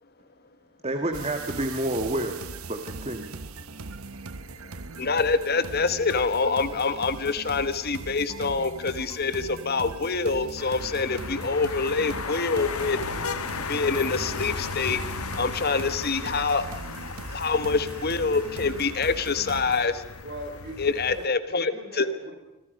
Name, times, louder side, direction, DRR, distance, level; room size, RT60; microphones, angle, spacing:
voice 1, 0.8-2.4 2.7-3.4, right 1 dB, 30° right, 6 dB, 1.7 m, -29 dB
sound 1, 1.1-19.9, right 3 dB, 75° right, 1.0 m, -40 dB
voice 2, 5.0-13.0 13.7-15.0 15.4-20.0 20.8-22.1, left 4 dB, 45° left, 12 dB, 1.2 m, -26 dB
sound 2, 10.6-21.3, left 4 dB, 80° left, 1.4 m, -36 dB
voice 3, 20.2-22.3, right 1 dB, 50° right, 3 dB, 5.3 m, -40 dB
27.5 x 25.5 x 5.3 m, 0.96 s
head